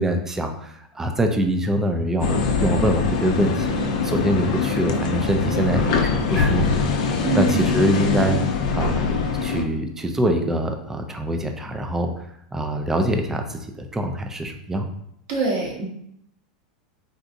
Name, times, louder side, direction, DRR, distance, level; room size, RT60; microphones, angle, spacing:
voice 1, 0.0-3.8 4.0-6.8 7.3-8.4 8.7-12.1 12.5-14.9, right 1 dB, 10° right, 5 dB, 0.4 m, -24 dB
sound 1, 2.2-9.6, left 4 dB, 65° left, 0.5 m, -23 dB
voice 2, 7.2-7.8 15.3-15.8, right 3 dB, 55° right, -2 dB, 1.0 m, -24 dB
3.9 x 2.4 x 2.5 m, 0.73 s
hypercardioid pair, 125°, 4 cm